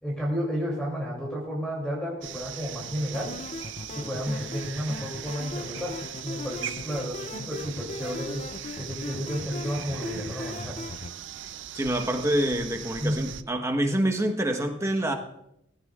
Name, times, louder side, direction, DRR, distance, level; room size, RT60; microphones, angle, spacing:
voice 1, 0.0-3.4 3.9-8.4 8.8-10.8 13.0-13.2, equal, 5° left, -3 dB, 2.8 m, -32 dB
sound 1, 2.2-13.4, right 10 dB, 60° right, 0.5 m, -40 dB
sound 2, 3.1-11.1, left 3 dB, 30° left, 0.5 m, -39 dB
voice 2, 11.7-15.2, right 1 dB, 15° right, 4 dB, 1.1 m, -26 dB
17.0 x 16.0 x 2.4 m, 0.79 s
head